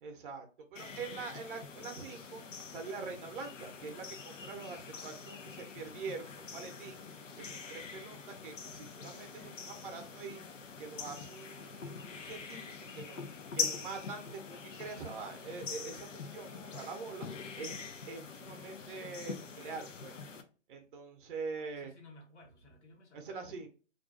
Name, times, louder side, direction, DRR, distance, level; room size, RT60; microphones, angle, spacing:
voice 1, 0.0-2.4 2.7-7.0 7.4-10.4 10.8-13.2 13.5-17.3 17.6-17.7 18.1-20.1 20.7-21.9 23.1-23.7, right 4 dB, 45° right, 0.6 m, -44 dB
sound 1, 0.7-20.4, left 5 dB, 90° left, 0.6 m, -44 dB
voice 2, 21.6-23.6, left 2 dB, 65° left, 1.1 m, -57 dB
2.4 x 2.2 x 2.3 m
hypercardioid pair, 140°, 36 cm